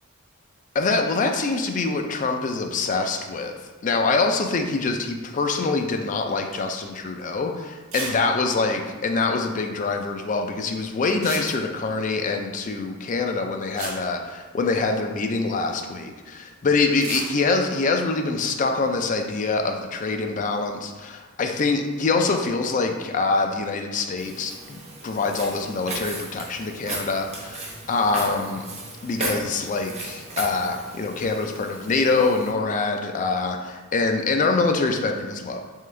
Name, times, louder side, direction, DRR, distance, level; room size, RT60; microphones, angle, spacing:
voice 1, 0.7-3.5 3.8-24.8 25.0-28.7 29.0-35.6, left 3 dB, 40° left, 4 dB, 0.4 m, -25 dB
sound 1, 6.5-6.8 7.2-7.3 7.9-8.2 8.5-8.6 8.8-8.9 11.1-11.9 13.3-13.4 13.7-15.0 16.9-17.4, right 3 dB, 80° right, 0.9 m, -34 dB
Walk footsteps, 24.2-32.5, right 2 dB, 30° right, 0.7 m, -36 dB
3.7 x 3.3 x 3.2 m, 1.3 s
head